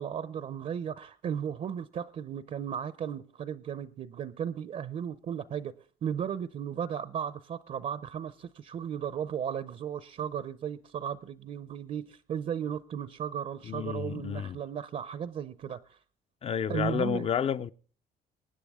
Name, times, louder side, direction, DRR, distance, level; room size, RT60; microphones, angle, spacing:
voice 1, 0.0-5.7 6.0-16.0 16.7-17.3, right 8 dB, 45° right, 0.6 m, -35 dB
voice 2, 13.7-14.6 16.4-17.7, left 8 dB, 35° left, 0.5 m, -30 dB
24.0 x 9.7 x 3.6 m
cardioid pair, 110°, 17 cm